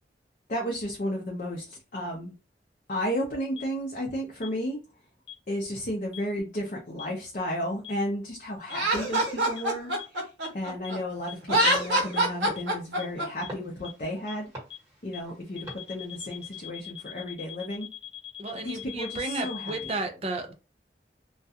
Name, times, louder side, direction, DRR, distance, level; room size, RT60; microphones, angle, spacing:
voice 1, 0.5-2.3 2.9-4.8 5.5-10.3 10.5-14.5 15.0-17.9 18.6-19.9, equal, 45° left, 0.5 m, -33 dB
sound 1, 3.6-3.7 4.4-4.5 5.3-5.4 6.1-6.2 7.0-7.1 7.8-7.9 8.7-8.8 9.1-9.2 9.6-9.7 10.0-10.1 10.4-10.5 10.8-10.9 11.3-11.4 11.7-11.8 12.1-12.2 12.6-12.7 13.0-13.1 13.4-13.5 13.8-13.9 14.3-14.4 14.7-14.8 15.1-15.2 15.6-20.0, left 13 dB, 85° left, 0.7 m, -41 dB
Laughter, 8.7-11.0 11.4-13.3, right 1 dB, 90° right, 0.9 m, -25 dB
sound 2, 11.5-16.6, right 1 dB, 20° right, 1.2 m, -46 dB
voice 2, 18.4-20.5, right 3 dB, 35° right, 0.4 m, -33 dB
2.3 x 2.2 x 2.7 m
head